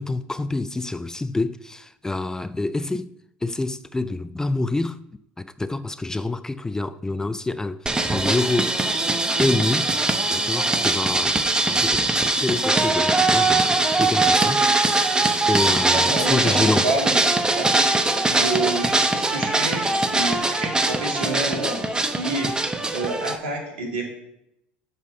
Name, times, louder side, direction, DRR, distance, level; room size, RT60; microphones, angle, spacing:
voice 1, 0.0-3.1 3.4-5.0 5.4-8.8 9.4-9.9 10.3-11.4 11.7-16.9, left 2 dB, 10° left, 0.3 m, -27 dB
sound 1, 7.9-23.4, right 2 dB, 15° right, 0.8 m, -21 dB
voice 2, 15.9-17.3 17.6-17.7 18.3-22.6 22.9-24.0, right 2 dB, 75° right, 2.4 m, -28 dB
7.3 x 5.6 x 5.5 m
hypercardioid pair, 75°, 5 cm